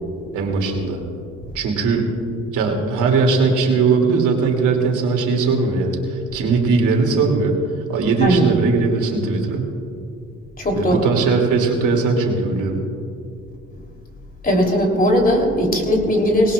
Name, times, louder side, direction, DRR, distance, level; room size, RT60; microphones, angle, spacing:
voice 1, 0.3-1.0 1.5-2.1 2.4-7.6 7.9-9.7 10.7-12.8, right 4 dB, 85° right, 1 dB, 2.8 m, -19 dB
voice 2, 8.2-8.5 10.6-11.1 14.4-16.5, equal, 30° left, 1 dB, 3.4 m, -18 dB
20.0 x 18.5 x 2.5 m, 2.5 s
cardioid pair, 90°, 30 cm